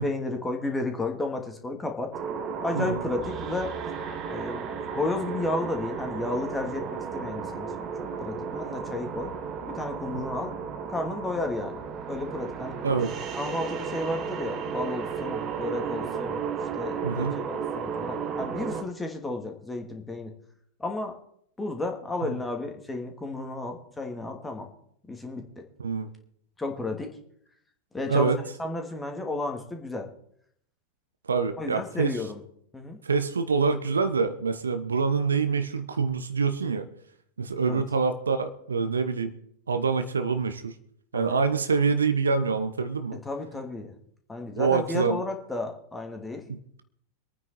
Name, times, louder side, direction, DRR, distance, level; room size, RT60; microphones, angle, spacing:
voice 1, 0.0-2.1 2.6-3.7 4.3-6.8 7.1-9.3 9.7-10.6 10.9-12.8 13.3-16.4 16.7-20.3 20.8-21.1 21.6-24.7 25.1-25.4 26.6-27.1 27.9-28.3 28.6-30.1 31.6-32.4 32.7-33.0 37.6-37.8 41.1-41.4 43.2-43.9 44.3-46.8, left 2 dB, 10° left, 3 dB, 2.7 m, -32 dB
sound 1, 2.1-18.8, right 6 dB, 35° right, 1.8 m, -34 dB
voice 2, 17.0-17.4 22.2-22.4 25.8-26.1 28.1-28.4 31.3-32.2 33.0-36.9 37.4-39.4 39.7-40.7 41.1-43.2 44.6-45.2 46.5-46.8, right 5 dB, 70° right, 10 dB, 1.2 m, -26 dB
25.0 x 9.4 x 4.4 m, 0.68 s
figure-of-eight pair, 90°, 0 cm